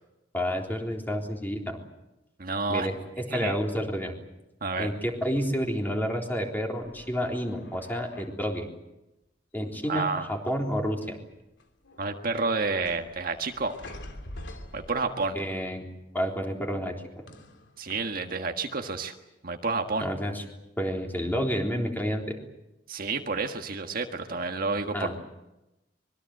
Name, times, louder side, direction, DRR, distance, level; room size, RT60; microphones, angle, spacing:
voice 1, 0.3-1.8 2.7-2.9 3.3-4.2 4.8-8.7 9.5-11.2 15.3-15.8 16.1-17.2 20.0-20.4 20.8-22.4 24.9-25.1, equal, 10° left, 1 dB, 3.7 m, -30 dB
voice 2, 2.4-2.9 3.3-3.6 4.6-4.9 9.9-10.3 12.0-13.8 14.7-15.4 17.8-19.1 19.4-20.1 22.9-25.3, right 4 dB, 50° right, 4 dB, 1.6 m, -30 dB
sound 1, 6.8-8.6 9.7-10.4 10.6-11.2 11.6-15.5 17.3-18.2, left 1 dB, 80° left, 3.0 m, -47 dB
25.0 x 22.5 x 7.9 m, 0.95 s
head